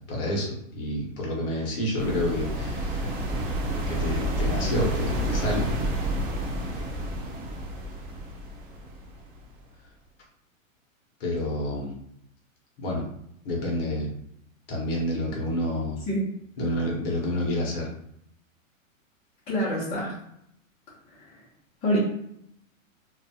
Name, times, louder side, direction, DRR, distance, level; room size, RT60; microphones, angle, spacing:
voice 1, 0.0-3.1 3.9-5.7 11.2-11.9 12.8-13.0 13.4-14.1 14.7-16.0 16.6-17.9, left 1 dB, 45° left, -2 dB, 0.9 m, -29 dB
sound 1, 2.0-9.6, right 1 dB, 40° right, 0.6 m, -29 dB
voice 2, 19.5-20.1 21.2-21.3 21.8-22.0, equal, 15° left, -8 dB, 0.7 m, -26 dB
2.4 x 2.3 x 2.7 m, 0.74 s
hypercardioid pair, 150°, 41 cm